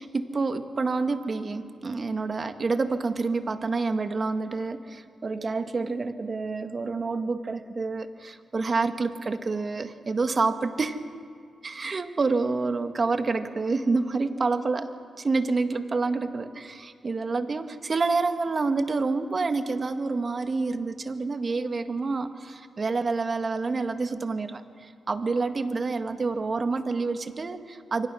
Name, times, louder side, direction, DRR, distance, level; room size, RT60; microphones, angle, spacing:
voice 1, 0.0-11.0 11.6-14.9 15.2-28.1, right 3 dB, 50° right, 8 dB, 1.7 m, -28 dB
27.5 x 24.0 x 6.3 m, 2.3 s
supercardioid pair, 50°, 0 cm